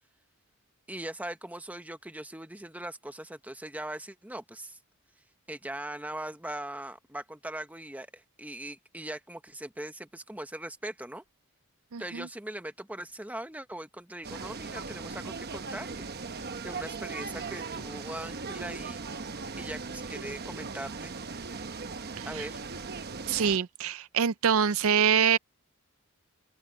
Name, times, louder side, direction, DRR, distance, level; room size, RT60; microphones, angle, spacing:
voice 1, 0.9-4.8 5.5-11.2 12.0-19.0 19.6-21.1 22.2-22.6, right 1 dB, 5° right, 1.2 m, -40 dB
voice 2, 11.9-12.3 22.2-22.5 23.3-25.4, right 7 dB, 65° right, 0.5 m, -25 dB
sound 1, 14.2-23.6, right 4 dB, 45° right, 1.0 m, -38 dB
open air
head